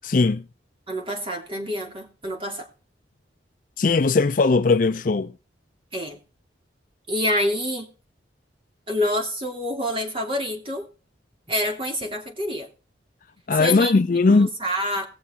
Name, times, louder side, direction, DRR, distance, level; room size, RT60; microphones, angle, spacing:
voice 1, 0.0-0.4 3.8-5.3 13.5-14.5, left 3 dB, 45° left, 0.5 m, -19 dB
voice 2, 0.9-2.7 5.9-6.2 7.1-7.9 8.9-10.9 11.5-12.7 13.5-13.9 14.3-15.0, equal, 30° right, 3.0 m, -27 dB
20.0 x 7.0 x 3.6 m
head